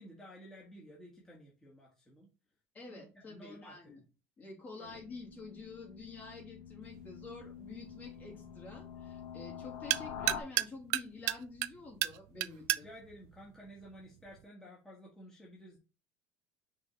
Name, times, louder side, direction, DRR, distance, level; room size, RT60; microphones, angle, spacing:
voice 1, 0.0-2.3 2.9-4.0 4.7-5.0 12.7-15.8, equal, 10° left, -4 dB, 1.5 m, -53 dB
voice 2, 2.7-4.0 4.4-12.8, left 3 dB, 30° left, -1 dB, 2.8 m, -49 dB
sound 1, 4.8-10.4, left 8 dB, 60° left, 1.1 m, -47 dB
sound 2, 6.8-14.4, right 17 dB, 65° right, 0.3 m, -38 dB
6.0 x 3.7 x 4.3 m, 0.32 s
cardioid pair, 145°, 5 cm